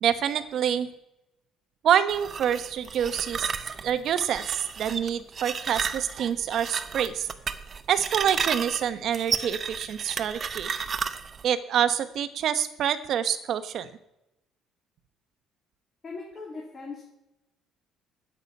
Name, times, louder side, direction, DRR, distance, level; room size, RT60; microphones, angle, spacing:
voice 1, 0.0-0.9 1.8-3.5 3.8-7.3 7.9-10.7 11.4-13.9, right 9 dB, 50° right, 11 dB, 1.0 m, -26 dB
sound 1, 2.1-11.4, right 6 dB, 30° right, 0.7 m, -33 dB
voice 2, 16.0-17.0, left 4 dB, 25° left, -3 dB, 2.8 m, -39 dB
9.5 x 8.2 x 9.4 m, 0.86 s
cardioid pair, 165°, 0 cm